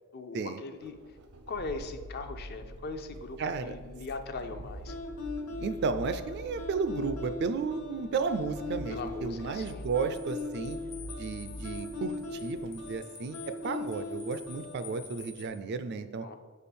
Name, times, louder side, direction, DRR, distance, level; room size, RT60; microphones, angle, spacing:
voice 1, 0.1-1.0 1.5-5.0 8.9-9.8 16.2-16.4, left 3 dB, 45° left, 8 dB, 0.4 m, -40 dB
sound 1, 0.8-12.9, equal, 80° right, 0.7 m, -46 dB
voice 2, 3.4-3.8 5.6-10.8 11.2-16.3, right 5 dB, 50° right, 10 dB, 0.3 m, -33 dB
sound 2, 4.9-15.0, left 3 dB, 85° left, 0.9 m, -39 dB
sound 3, 8.6-15.5, left 5 dB, 70° left, 1.3 m, -51 dB
4.9 x 4.3 x 5.3 m, 1.4 s
head